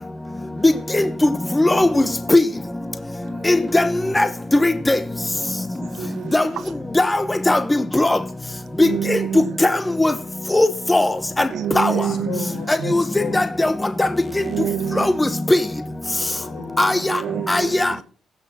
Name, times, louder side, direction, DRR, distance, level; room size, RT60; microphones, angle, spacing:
voice 1, 1.6-1.9 2.3-2.4 3.5-3.8 4.2-4.3 4.6-5.0 6.3-6.4 7.0-7.1 7.5-7.6 7.9-8.2 8.8-9.2 10.0-10.1 10.5-11.1 11.4-11.5 11.8-11.9 12.9-13.0 13.3-13.7 14.0-14.1 15.0-15.1 15.5-15.6 16.8-16.9 17.5-17.9, left 2 dB, 15° left, 0.9 m, -17 dB
voice 2, 6.0-6.5 8.8-9.6 11.5-12.5 12.8-12.9 14.4-15.2 17.0-18.0, right 10 dB, 75° right, 0.7 m, -27 dB
voice 3, 11.9-13.4 16.2-17.3, left 6 dB, 75° left, 6.0 m, -34 dB
16.5 x 6.2 x 6.0 m
cardioid pair, 90°, 0 cm